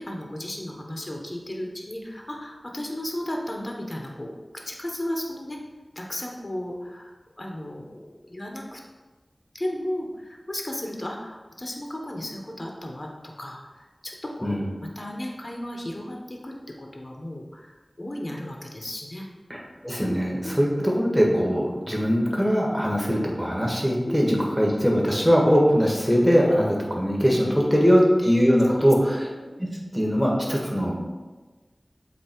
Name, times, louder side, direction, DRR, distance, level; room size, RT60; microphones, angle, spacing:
voice 1, 0.0-4.3 4.7-5.6 5.9-8.8 9.5-19.3 20.0-20.2 20.4-20.6 22.7-22.8 24.1-24.2 27.6-27.7 28.7-28.8 29.4-29.6, left 1 dB, 40° left, 0 dB, 0.9 m, -35 dB
voice 2, 19.5-29.3 29.6-29.7 29.9-31.0, equal, 5° right, -2 dB, 1.6 m, -21 dB
7.9 x 2.8 x 4.5 m, 1.3 s
wide cardioid pair, 45°, 0 cm